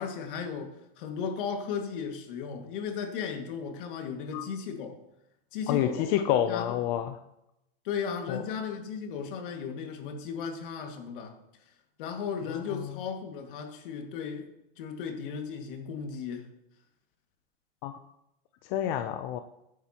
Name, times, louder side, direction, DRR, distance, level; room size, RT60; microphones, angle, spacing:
voice 1, 0.0-5.0 5.5-6.2 6.5-6.7 7.8-11.4 12.0-14.5 14.8-16.5, left 6 dB, 60° left, 4 dB, 2.1 m, -35 dB
voice 2, 5.7-7.2 8.3-8.4 12.7-12.9 17.8-17.9 18.7-19.4, left 11 dB, 40° left, 8 dB, 0.6 m, -28 dB
15.0 x 9.5 x 3.0 m, 0.83 s
supercardioid pair, 150°, 29 cm